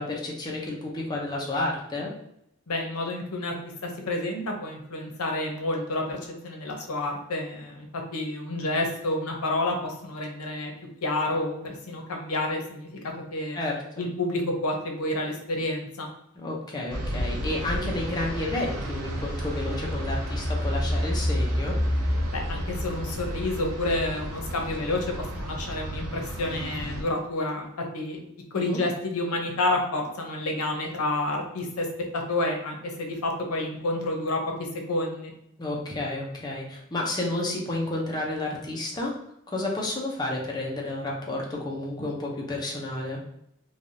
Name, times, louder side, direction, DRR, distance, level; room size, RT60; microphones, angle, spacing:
voice 1, 0.0-2.1 13.5-14.1 16.4-21.8 28.5-28.8 35.6-39.1 39.5-43.2, left 2 dB, 20° left, -3 dB, 0.5 m, -31 dB
voice 2, 2.7-7.9 8.1-10.7 11.0-13.0 13.3-13.6 14.0-16.1 22.3-27.7 27.9-28.2 28.5-31.9 32.1-35.3, left 2 dB, 90° left, 2 dB, 0.7 m, -29 dB
sound 1, 16.9-27.0, equal, 85° right, 0.6 m, -34 dB
sound 2, 18.9-24.5 24.9-25.0, left 1 dB, 55° right, 0.9 m, -30 dB
3.2 x 2.3 x 2.6 m, 0.78 s
head